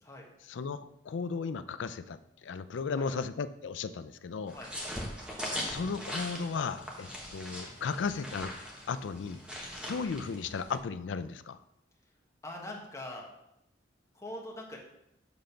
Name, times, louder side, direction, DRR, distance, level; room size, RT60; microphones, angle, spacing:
voice 1, 0.4-4.6 5.6-8.5 8.9-9.4 9.8-11.6, left 5 dB, 80° left, 13 dB, 0.4 m, -35 dB
sound 1, 4.5-10.8, equal, 5° right, 1.1 m, -40 dB
voice 2, 12.4-13.3 14.2-14.8, left 1 dB, 15° left, -1 dB, 1.2 m, -42 dB
7.0 x 3.9 x 5.6 m, 0.81 s
head